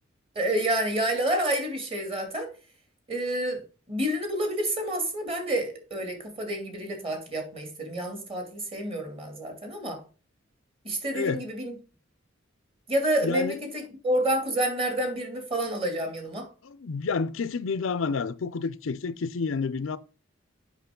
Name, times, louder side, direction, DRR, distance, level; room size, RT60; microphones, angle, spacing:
voice 1, 0.3-2.5 3.1-3.6 3.9-10.0 10.8-11.8 12.9-16.5, right 1 dB, 30° right, 2.5 m, -29 dB
voice 2, 11.1-11.4 13.2-13.5 16.6-20.0, left 5 dB, 80° left, 0.5 m, -29 dB
8.2 x 5.9 x 3.7 m
head